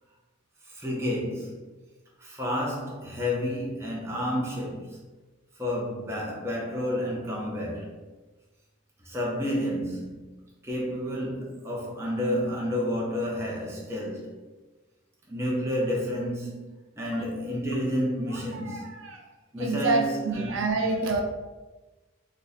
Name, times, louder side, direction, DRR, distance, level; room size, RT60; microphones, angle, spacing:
voice 1, 0.6-1.6 2.2-5.0 5.6-8.0 9.0-10.4 10.6-14.4 15.3-16.6 17.0-18.9 19.5-20.9, equal, 15° right, -4 dB, 0.6 m, -30 dB
voice 2, 18.3-19.2 19.6-21.2, right 3 dB, 75° right, 2 dB, 0.5 m, -28 dB
2.6 x 2.6 x 3.9 m, 1.2 s
head